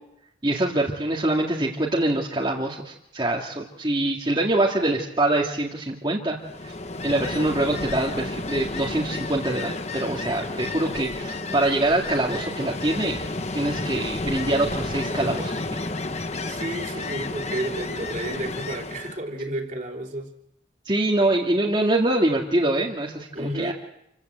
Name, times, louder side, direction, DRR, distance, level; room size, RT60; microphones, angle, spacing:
voice 1, 0.4-6.4 6.6-6.7 7.0-13.2 13.5-15.8 20.9-23.7, right 1 dB, 25° right, -4 dB, 2.2 m, -24 dB
Ocean, 6.4-19.2, left 2 dB, 35° left, 1.0 m, -31 dB
voice 2, 16.5-20.3 23.3-23.7, right 1 dB, 45° right, 1 dB, 3.2 m, -31 dB
28.0 x 15.5 x 8.1 m, 0.82 s
head